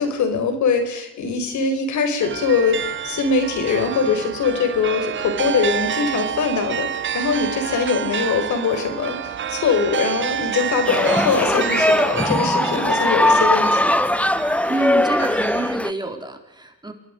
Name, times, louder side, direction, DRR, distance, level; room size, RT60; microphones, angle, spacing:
voice 1, 0.0-13.9, left 5 dB, 70° left, 7 dB, 4.5 m, -22 dB
sound 1, 2.2-15.8, right 9 dB, 40° right, 0.7 m, -29 dB
sound 2, 10.9-15.9, left 1 dB, 5° left, 0.8 m, -19 dB
voice 2, 14.7-16.9, right 2 dB, 15° right, 4 dB, 4.0 m, -27 dB
27.5 x 21.0 x 5.2 m, 0.92 s
cardioid pair, 90°, 30 cm